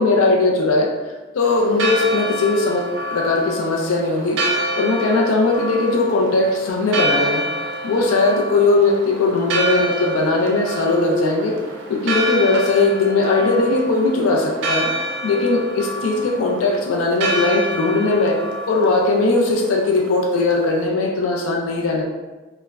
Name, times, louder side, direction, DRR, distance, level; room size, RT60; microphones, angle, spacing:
voice 1, 0.0-2.9 3.1-4.4 4.7-7.4 7.8-11.6 11.9-14.9 15.2-18.4 18.7-22.0, left 3 dB, 80° left, 0 dB, 0.4 m, -19 dB
Church bell, 1.4-20.8, right 1 dB, 65° right, 0.4 m, -27 dB
3.2 x 2.0 x 2.3 m, 1.2 s
head